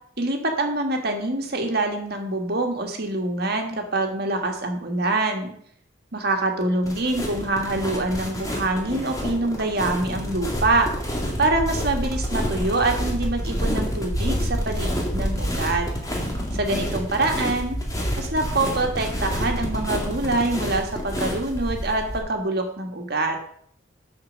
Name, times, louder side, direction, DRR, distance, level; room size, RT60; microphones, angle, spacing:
voice 1, 0.2-5.5 6.1-10.9 11.4-15.9 16.5-17.8 18.2-23.4, right 2 dB, 55° right, 3 dB, 1.8 m, -25 dB
sound 1, 6.8-22.2, equal, 20° left, 2.2 m, -28 dB
8.7 x 6.7 x 6.4 m, 0.67 s
head